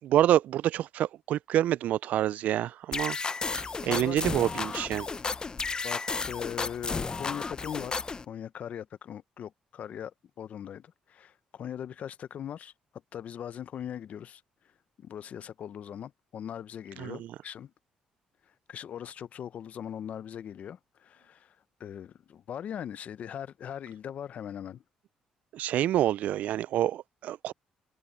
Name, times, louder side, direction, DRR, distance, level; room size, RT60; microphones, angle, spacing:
voice 1, 0.0-3.2 3.6-5.1 17.0-17.3 25.5-27.5, right 12 dB, 70° right, 0.4 m, -27 dB
sound 1, 2.9-8.2, left 4 dB, 30° left, 0.6 m, -33 dB
voice 2, 3.9-4.2 5.8-7.9 8.3-12.7 13.1-14.4 15.0-17.7 18.7-24.8, left 9 dB, 60° left, 0.8 m, -40 dB
supercardioid pair, 65°, 3 cm